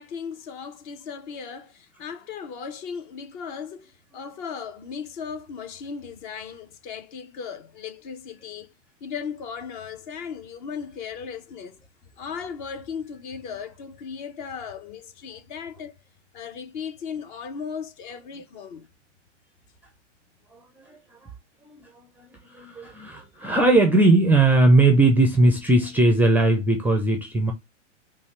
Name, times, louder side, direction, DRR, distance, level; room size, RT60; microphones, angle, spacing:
voice 1, 0.0-8.7 9.0-11.8 12.2-15.9 16.3-18.9, left 6 dB, 40° left, 1.0 m, -36 dB
voice 2, 20.5-21.0 21.7-27.5, right 2 dB, 5° right, 0.5 m, -19 dB
5.4 x 2.4 x 3.1 m
figure-of-eight pair, 105°, 37 cm